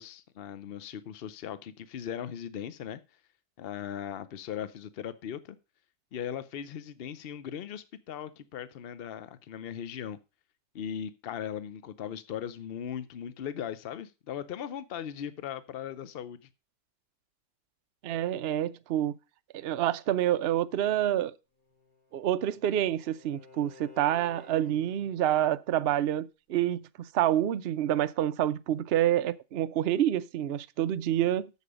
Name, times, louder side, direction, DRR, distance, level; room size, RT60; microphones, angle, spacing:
voice 1, 0.0-3.0 3.6-5.6 6.1-10.2 10.7-16.4, left 9 dB, 80° left, 0.5 m, -38 dB
voice 2, 18.0-19.1 19.5-21.3 22.1-31.5, right 12 dB, 85° right, 0.5 m, -28 dB
Bowed string instrument, 21.6-25.2, left 4 dB, 50° left, 5.1 m, -54 dB
8.2 x 7.3 x 5.0 m
omnidirectional pair, 1.9 m